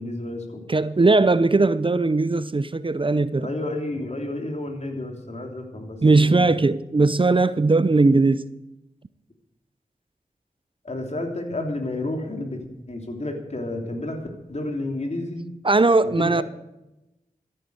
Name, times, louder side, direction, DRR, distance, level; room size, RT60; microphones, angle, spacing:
voice 1, 0.0-0.6 3.4-6.5 10.8-12.6 12.9-14.2 14.5-15.4 16.0-16.4, left 2 dB, 50° left, 3.0 m, -31 dB
voice 2, 0.7-3.5 6.0-8.5 15.6-16.4, right 3 dB, 35° right, 0.6 m, -19 dB
13.5 x 9.2 x 8.0 m
cardioid pair, 45°, 15 cm